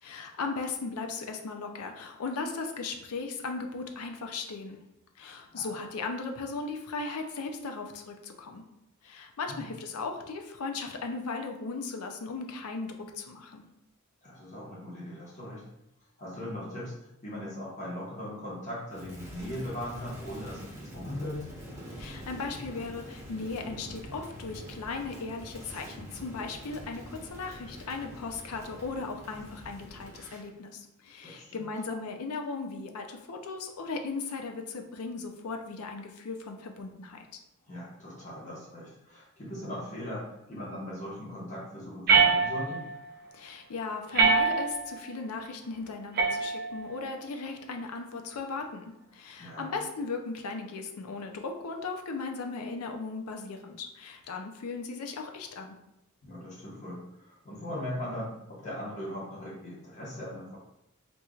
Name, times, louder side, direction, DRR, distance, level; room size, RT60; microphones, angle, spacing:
voice 1, 0.0-4.8 5.2-8.6 9.0-13.6 22.0-37.3 43.3-55.7, left 4 dB, 85° left, 4 dB, 0.5 m, -37 dB
voice 2, 5.5-5.8 9.5-9.7 14.2-15.7 16.2-16.9 17.2-21.5 31.2-31.7 37.6-42.9 49.4-49.7 56.2-60.6, left 1 dB, 35° left, -7 dB, 1.2 m, -39 dB
Crackle, 18.9-30.5, equal, 15° right, 1.0 m, -45 dB
sound 1, 42.1-43.0 44.1-45.0 46.2-47.0, right 5 dB, 45° right, 0.5 m, -24 dB
4.3 x 2.6 x 2.3 m, 0.88 s
head